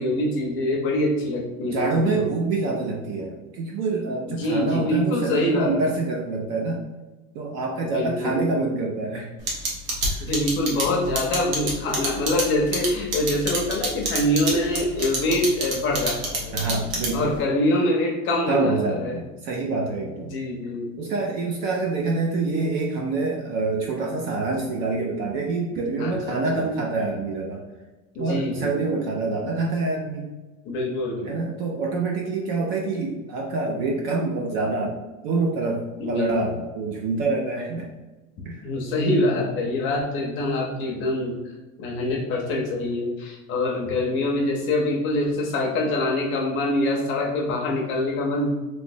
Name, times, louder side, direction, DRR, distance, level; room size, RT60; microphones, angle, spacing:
voice 1, 0.0-2.4 4.3-5.7 7.8-8.4 10.2-16.6 17.1-18.7 19.0-19.2 20.2-20.9 26.0-26.6 28.1-28.8 30.6-31.3 36.0-36.5 38.6-41.4 41.8-48.5, left 1 dB, 30° left, -1 dB, 0.6 m, -25 dB
voice 2, 1.6-6.8 7.3-9.3 10.1-10.2 16.5-17.3 18.5-20.3 21.0-27.6 28.2-30.3 31.2-35.0 35.2-37.9 38.4-38.6, right 3 dB, 40° right, -1 dB, 0.4 m, -26 dB
sound 1, 9.5-17.4, right 3 dB, 75° right, 1.3 m, -26 dB
3.1 x 3.0 x 2.6 m, 1.1 s
supercardioid pair, 155°, 42 cm